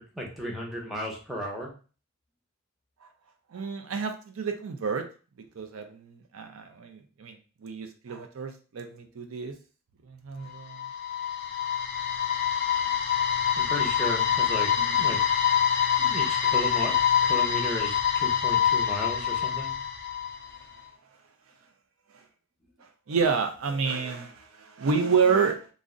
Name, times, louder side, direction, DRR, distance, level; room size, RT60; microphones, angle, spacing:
voice 1, 0.0-1.7 13.6-15.2 16.0-19.8, equal, ahead, -2 dB, 0.6 m, -35 dB
voice 2, 3.5-5.0 5.6-9.6 10.0-10.9 20.5-20.6 22.1-22.2 22.8-25.7, right 5 dB, 85° right, 5 dB, 0.5 m, -29 dB
sound 1, 10.5-20.6, left 8 dB, 50° left, 0.4 m, -25 dB
2.5 x 2.1 x 3.6 m, 0.37 s
head